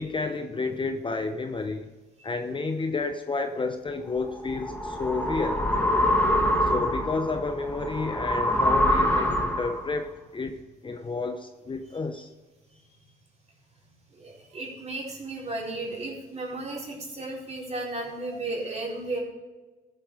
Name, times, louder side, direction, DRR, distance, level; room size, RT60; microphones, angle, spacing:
voice 1, 0.0-1.9 2.2-5.6 6.6-12.3, left 3 dB, 25° left, 0.8 m, -31 dB
sound 1, 4.2-9.9, left 1 dB, 10° left, 1.7 m, -25 dB
voice 2, 14.2-19.2, right 2 dB, 35° right, 4.4 m, -34 dB
14.5 x 7.6 x 4.8 m
cardioid pair, 90°, 20 cm